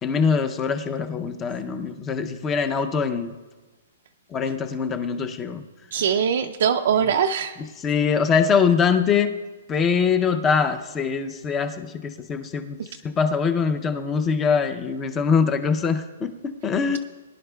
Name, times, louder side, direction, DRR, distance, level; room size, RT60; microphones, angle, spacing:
voice 1, 0.0-3.4 4.3-5.6 7.8-9.3 9.7-17.0, left 6 dB, 10° left, 8 dB, 0.5 m, -23 dB
voice 2, 5.9-7.6, right 7 dB, 50° right, 5 dB, 0.4 m, -22 dB
22.0 x 11.0 x 2.3 m, 1.3 s
hypercardioid pair, 175°, 0 cm